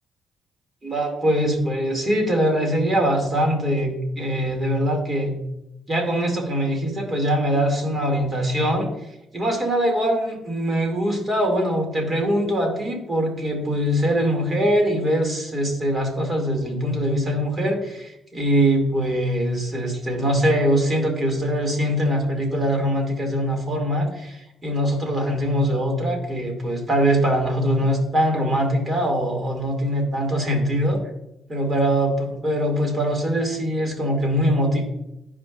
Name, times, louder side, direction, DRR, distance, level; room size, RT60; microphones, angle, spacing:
voice 1, 0.8-5.4 5.9-8.9 9.3-31.0 31.5-34.8, equal, 30° right, 1 dB, 2.5 m, -22 dB
13.0 x 5.1 x 2.6 m, 0.86 s
cardioid pair, 90°, 0 cm